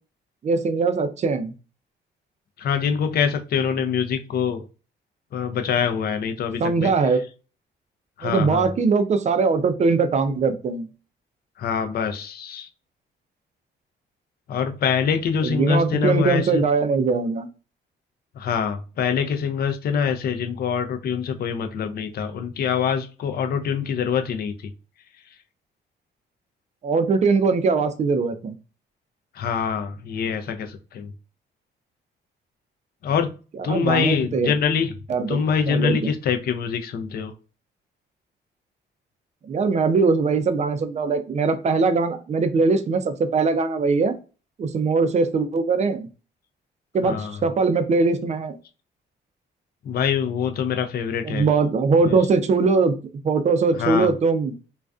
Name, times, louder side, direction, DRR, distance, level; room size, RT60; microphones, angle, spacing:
voice 1, 0.4-1.5 6.6-7.2 8.2-10.9 15.4-17.5 26.8-28.5 33.7-34.5 35.1-35.4 35.7-36.1 39.5-44.2 44.6-46.1 46.9-48.6 51.2-52.9 53.2-54.5, right 4 dB, 35° right, 10 dB, 0.4 m, -21 dB
voice 2, 2.6-4.6 5.3-6.9 8.2-8.7 11.6-12.7 14.5-16.6 18.4-24.5 29.3-31.1 33.0-33.3 33.6-34.9 35.3-37.3 47.0-47.4 49.8-51.5 52.0-52.2 53.7-54.1, left 7 dB, 50° left, 7 dB, 0.4 m, -24 dB
2.4 x 2.2 x 2.3 m, 0.34 s
cardioid pair, 90°, 20 cm